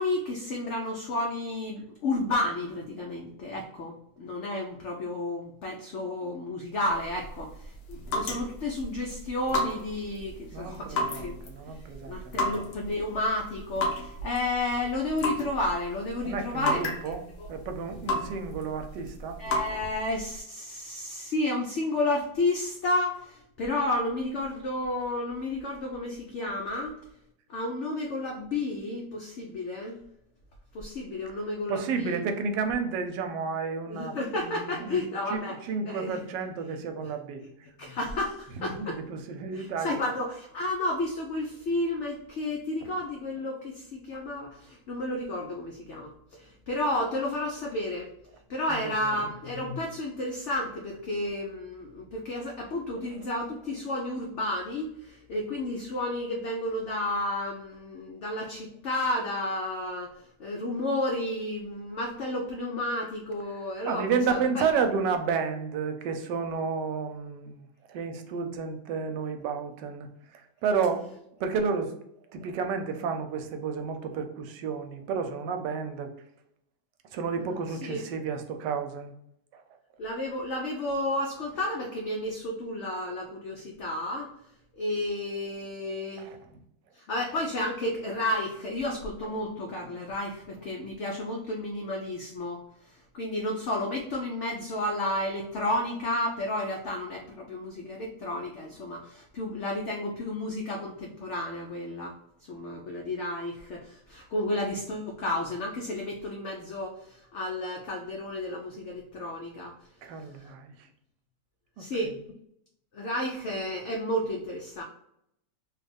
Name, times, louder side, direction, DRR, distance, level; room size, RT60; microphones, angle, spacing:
voice 1, 0.0-11.5 12.1-16.9 17.4-17.5 19.4-27.0 27.5-30.0 30.7-32.2 33.9-35.6 35.9-36.2 37.8-39.0 39.5-48.1 48.5-64.6 77.4-78.0 80.0-84.3 84.7-86.3 86.9-92.6 92.8-102.1 102.5-109.7 111.8-112.2 112.9-114.8, left 1 dB, 85° left, 0 dB, 0.6 m, -32 dB
sound 1, 6.8-20.4, left 1 dB, 70° left, 1.3 m, -34 dB
voice 2, 10.5-12.3 16.2-17.2 17.5-19.4 31.7-35.0 35.3-35.4 35.7-37.4 38.6-40.0 48.7-49.1 63.9-70.1 70.6-71.0 71.4-71.9 72.3-76.1 77.1-79.1 79.5-79.6 86.2-86.4 110.0-110.7 111.8-111.9, right 5 dB, 90° right, 6 dB, 1.2 m, -31 dB
3.2 x 2.3 x 3.3 m, 0.75 s
omnidirectional pair, 1.8 m